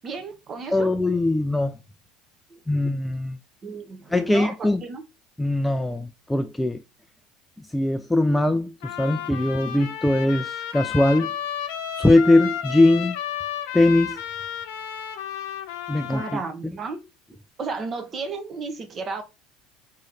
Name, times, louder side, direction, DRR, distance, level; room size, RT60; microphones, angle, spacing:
voice 1, 0.0-0.9 2.5-2.6 3.6-5.0 16.1-17.0 17.6-19.2, right 4 dB, 35° right, 0.9 m, -33 dB
voice 2, 0.7-1.8 2.7-3.4 4.1-4.8 5.4-6.8 7.7-11.3 12.0-13.1 13.7-14.2 15.9-16.7, left 2 dB, 5° left, 0.3 m, -21 dB
Trumpet, 8.8-16.4, left 10 dB, 85° left, 0.8 m, -32 dB
3.8 x 3.1 x 4.1 m
supercardioid pair, 115°, 0 cm